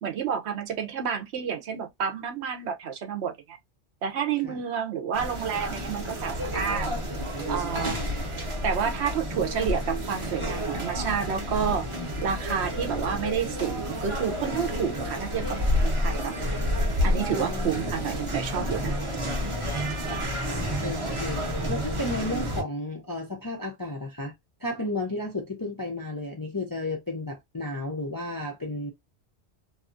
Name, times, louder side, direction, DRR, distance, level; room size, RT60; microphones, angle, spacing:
voice 1, 0.0-3.6 4.0-6.9 7.5-8.0 8.6-11.9 12.2-16.3 17.0-19.0, right 7 dB, 70° right, 0.9 m, -30 dB
sound 1, 5.1-22.6, equal, 30° right, 0.8 m, -30 dB
voice 2, 7.8-8.1 17.3-17.8 20.4-24.3 24.6-28.9, left 2 dB, 30° left, 0.4 m, -33 dB
2.7 x 2.3 x 2.4 m
omnidirectional pair, 1.2 m